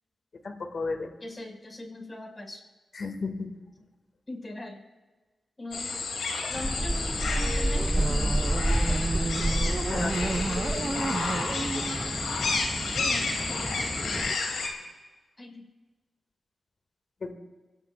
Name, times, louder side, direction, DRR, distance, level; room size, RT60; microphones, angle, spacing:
voice 1, 0.4-1.1 2.9-3.5 9.9-10.5 17.2-17.3, left 3 dB, 65° left, 5 dB, 2.2 m, -33 dB
voice 2, 1.2-2.6 4.3-4.8 5.6-6.0 6.5-8.6 10.8-11.7 12.9-14.3 15.4-15.7, left 1 dB, 30° left, 2 dB, 5.9 m, -41 dB
sound 1, 5.7-14.7, left 4 dB, 85° left, 2.8 m, -31 dB
sound 2, 6.5-14.3, right 1 dB, 15° right, 0.3 m, -30 dB
sound 3, 8.0-13.1, right 3 dB, 50° right, 1.4 m, -33 dB
26.0 x 17.5 x 2.5 m, 1.3 s
cardioid pair, 45°, 0 cm